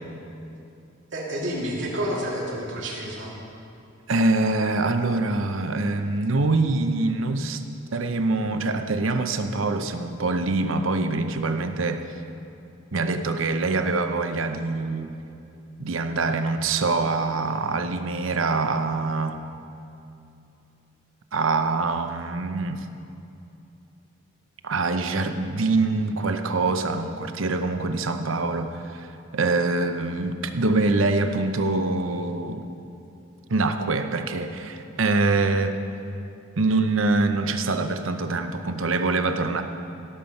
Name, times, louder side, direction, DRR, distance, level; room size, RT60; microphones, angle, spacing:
voice 1, 1.1-3.3, equal, 65° right, -4 dB, 2.6 m, -29 dB
voice 2, 4.1-7.6 7.9-12.0 12.9-15.1 15.8-19.4 21.3-22.9 24.6-29.1 29.3-32.6 33.5-35.7 36.6-39.6, right 3 dB, 80° right, 7 dB, 0.7 m, -24 dB
17.0 x 7.1 x 5.3 m, 2.7 s
head